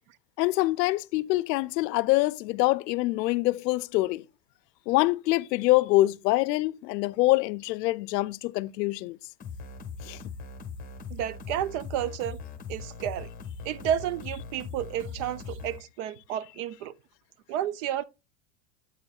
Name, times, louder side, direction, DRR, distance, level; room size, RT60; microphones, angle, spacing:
voice 1, 0.4-4.2 4.9-9.2 10.0-10.2, left 19 dB, 90° left, 0.5 m, -25 dB
sound 1, 9.4-15.8, left 5 dB, 15° left, 1.1 m, -40 dB
voice 2, 11.1-12.4 12.7-13.3 13.6-16.9 17.5-18.0, right 10 dB, 50° right, 0.5 m, -31 dB
8.4 x 7.1 x 2.3 m
supercardioid pair, 150°, 47 cm